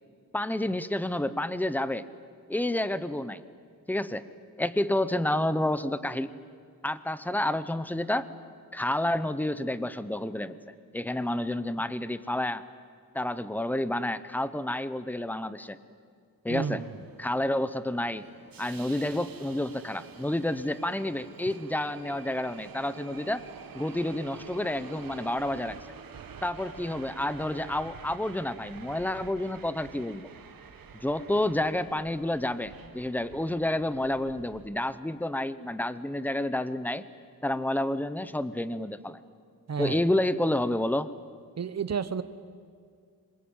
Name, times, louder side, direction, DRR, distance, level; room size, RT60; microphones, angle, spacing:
voice 1, 0.3-2.0 2.5-3.4 3.9-4.3 4.6-6.3 6.8-8.3 8.7-10.6 10.9-12.6 13.1-15.8 16.4-16.8 17.2-18.3 18.6-23.4 23.7-25.8 26.4-30.3 30.9-37.0 37.4-39.2 39.8-41.1, left 1 dB, 5° left, 14 dB, 0.8 m, -29 dB
voice 2, 16.5-16.9 39.7-40.0 41.6-42.2, right 6 dB, 45° right, 13 dB, 1.0 m, -31 dB
Subway metro underground, 16.8-34.7, right 6 dB, 75° right, 1.6 m, -48 dB
26.0 x 22.0 x 8.9 m, 2.1 s
wide cardioid pair, 165°, 36 cm